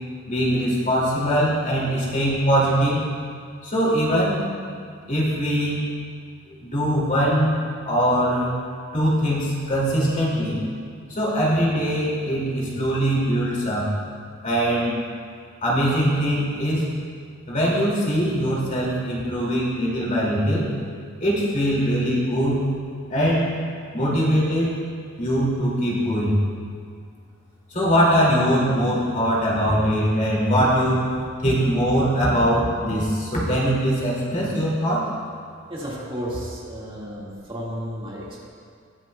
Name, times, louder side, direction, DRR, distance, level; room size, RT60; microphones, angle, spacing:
voice 1, 0.3-3.0 3.6-4.4 5.1-5.8 6.5-7.5 7.9-8.5 8.9-10.6 11.1-13.9 14.4-14.9 15.6-16.9 17.5-20.7 21.2-22.6 23.1-23.6 23.9-24.7 25.2-26.3 27.7-31.0 31.4-35.1, equal, 40° left, -5 dB, 2.2 m, -22 dB
voice 2, 35.7-38.5, equal, 25° right, -5 dB, 1.7 m, -33 dB
20.0 x 7.3 x 2.2 m, 2.2 s
head